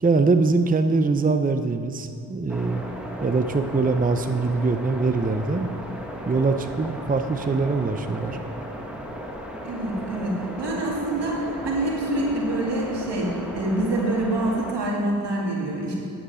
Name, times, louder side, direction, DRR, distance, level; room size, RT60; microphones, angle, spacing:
voice 1, 0.0-2.8 3.2-5.7 6.3-8.4, right 3 dB, 20° right, 8 dB, 0.6 m, -23 dB
sound 1, 2.5-14.7, equal, 5° right, 1.5 m, -36 dB
voice 2, 9.6-13.3 13.5-15.9, right 1 dB, 90° right, -3 dB, 2.2 m, -26 dB
9.8 x 8.7 x 5.6 m, 2.7 s
cardioid pair, 55°, 40 cm